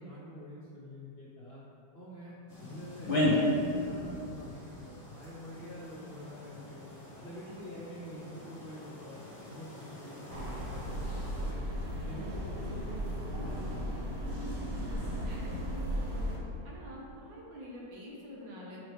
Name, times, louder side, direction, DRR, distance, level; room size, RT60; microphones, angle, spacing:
voice 1, 0.0-1.6 1.9-6.8 7.1-9.2 9.4-11.7 12.0-14.2, equal, 60° left, -7 dB, 0.6 m, -46 dB
sound 1, 2.5-11.5, left 1 dB, 35° left, 1.1 m, -36 dB
sound 2, 10.3-16.4, equal, 55° right, 1.4 m, -36 dB
voice 2, 16.6-18.8, equal, 85° right, -4 dB, 1.9 m, -47 dB
6.2 x 3.3 x 4.7 m, 2.6 s
omnidirectional pair, 2.0 m